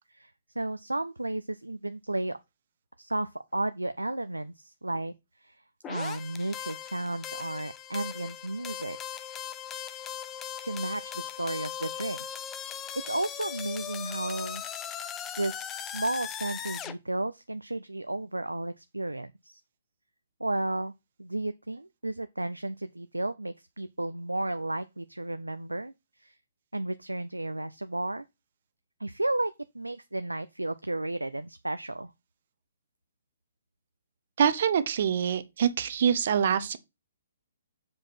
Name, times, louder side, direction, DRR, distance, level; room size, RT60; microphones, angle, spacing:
voice 1, 0.1-2.4 3.0-5.1 5.4-5.6 5.9-9.0 10.6-12.4 12.9-14.6 15.4-19.6 20.4-20.9 21.2-25.9 26.2-26.4 26.7-28.2 29.0-32.1, right 1 dB, 85° right, 0.5 m, -33 dB
sound 1, 5.8-16.9, left 9 dB, 20° left, 0.7 m, -39 dB
voice 2, 34.4-36.8, right 8 dB, 50° right, 0.9 m, -25 dB
7.4 x 5.0 x 4.4 m
figure-of-eight pair, 125°, 0 cm